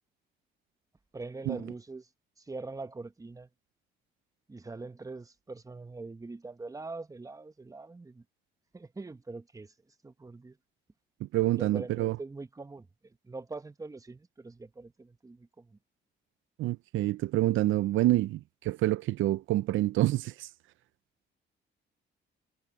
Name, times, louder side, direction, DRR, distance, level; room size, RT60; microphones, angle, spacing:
voice 1, 1.1-2.1 2.4-3.5 4.5-8.2 8.7-9.7 10.0-10.6 11.6-15.8, right 3 dB, 15° right, 1.1 m, -43 dB
voice 2, 11.2-12.2 16.6-20.5, right 15 dB, 80° right, 0.6 m, -27 dB
cardioid pair, 90°, 20 cm